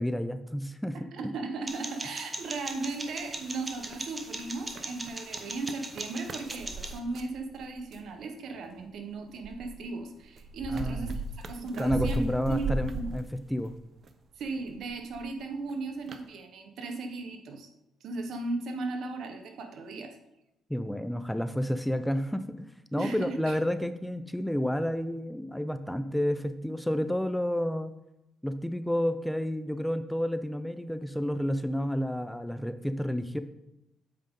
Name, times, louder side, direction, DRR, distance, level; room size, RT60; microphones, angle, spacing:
voice 1, 0.0-1.0 10.7-11.2 11.8-13.2 13.5-13.7 20.7-27.9 28.4-33.4, equal, 5° left, 11 dB, 0.4 m, -30 dB
voice 2, 1.1-13.1 14.4-17.7 18.0-20.1 23.0-23.6, right 3 dB, 70° right, 5 dB, 1.0 m, -36 dB
sound 1, 1.7-7.0, right 2 dB, 20° right, 1.0 m, -40 dB
sound 2, 2.5-3.5 3.8-8.1 8.8-14.1 14.4-15.3 15.7-15.8 16.1-16.2, right 3 dB, 55° right, 0.6 m, -37 dB
7.6 x 5.1 x 3.7 m, 0.88 s
cardioid pair, 90°, 0 cm